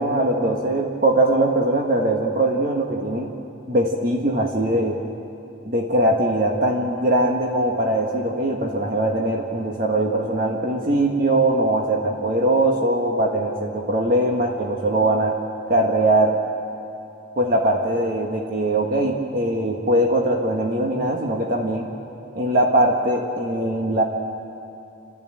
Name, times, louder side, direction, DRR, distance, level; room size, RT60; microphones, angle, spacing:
voice 1, 0.0-3.3 3.7-5.0 5.6-15.3 15.7-16.4 17.4-21.9 22.3-24.0, right 1 dB, 45° right, 1 dB, 1.6 m, -21 dB
29.5 x 13.5 x 9.0 m, 2.7 s
head